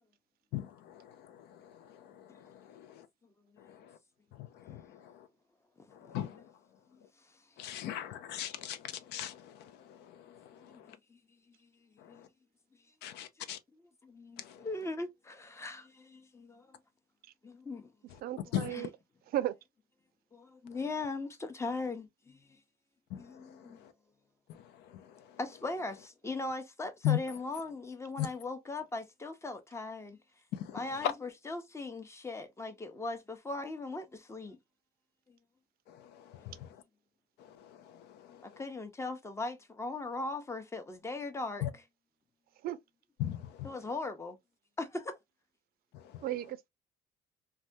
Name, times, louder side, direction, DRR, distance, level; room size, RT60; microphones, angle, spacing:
voice 1, 0.5-3.1 3.6-3.9 4.4-5.3 5.9-6.4 7.6-11.0 12.0-12.3 13.0-13.6 14.4-14.7 18.5-18.8 23.1-23.9 24.5-25.4 27.0-27.2 28.2-28.3 30.5-31.1 35.9-36.7 37.4-38.6 41.6-41.7 43.2-43.7 45.9-46.2, left 11 dB, 80° left, 0.5 m, -39 dB
voice 2, 5.8-6.1 10.5-11.2 11.5-12.2 13.4-16.8 17.4-17.9 18.7-18.9 20.3-22.6 23.2-23.8 25.4-30.2 30.7-34.6 35.3-35.4 38.4-41.8 43.6-44.4 44.8-45.2, left 3 dB, 15° left, 0.7 m, -40 dB
voice 3, 18.2-18.9 19.3-19.5 42.6-42.8 46.2-46.7, right 13 dB, 65° right, 0.4 m, -34 dB
3.3 x 2.2 x 2.5 m
cardioid pair, 110°, 17 cm